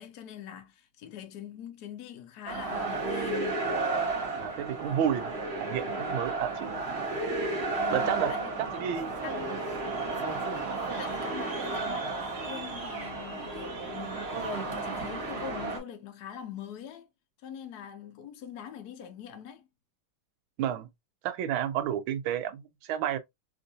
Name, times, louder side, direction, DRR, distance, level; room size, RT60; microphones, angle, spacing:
voice 1, 0.0-3.5 7.7-8.7 9.2-9.7 11.0-14.4 14.6-17.1 17.4-19.7, left 9 dB, 70° left, 0.9 m, -43 dB
sound 1, 2.5-15.8, right 3 dB, 45° right, 0.9 m, -33 dB
voice 2, 4.3-5.3 5.6-6.8 7.9-8.3 8.6-9.1 20.6-20.9 21.2-23.2, right 10 dB, 75° right, 1.3 m, -31 dB
3.6 x 2.5 x 2.6 m
omnidirectional pair, 2.3 m